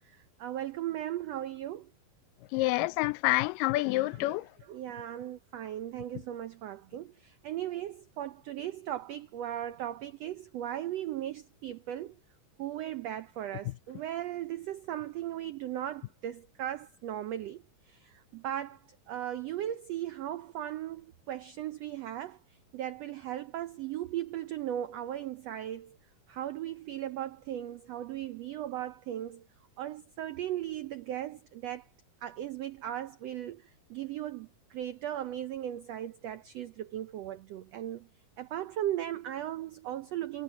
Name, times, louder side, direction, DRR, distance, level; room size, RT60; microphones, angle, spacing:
voice 1, 0.4-1.9 4.3-4.4 4.7-12.1 12.6-17.6 17.9-18.8 19.1-22.4 22.7-26.0 26.3-29.4 29.8-31.9 32.2-33.6 33.9-38.1 38.4-40.4, right 12 dB, 85° right, 1.4 m, -37 dB
voice 2, 2.5-4.5 13.7-13.8, left 19 dB, 85° left, 2.2 m, -28 dB
omnidirectional pair, 3.8 m